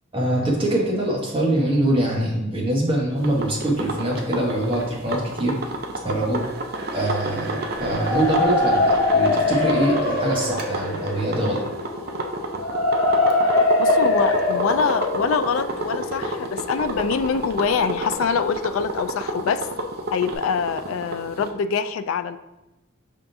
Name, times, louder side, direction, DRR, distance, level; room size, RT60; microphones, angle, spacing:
voice 1, 0.1-5.6 6.0-6.4 6.9-11.7, right 1 dB, 25° right, -3 dB, 1.1 m, -23 dB
sound 1, 3.2-21.5, right 2 dB, 50° right, 0.5 m, -30 dB
sound 2, 7.8-17.6, left 2 dB, 70° left, 1.0 m, -23 dB
voice 2, 13.8-19.6 20.1-22.4, left 6 dB, 85° left, 11 dB, 0.3 m, -24 dB
5.6 x 3.6 x 2.6 m, 0.96 s
head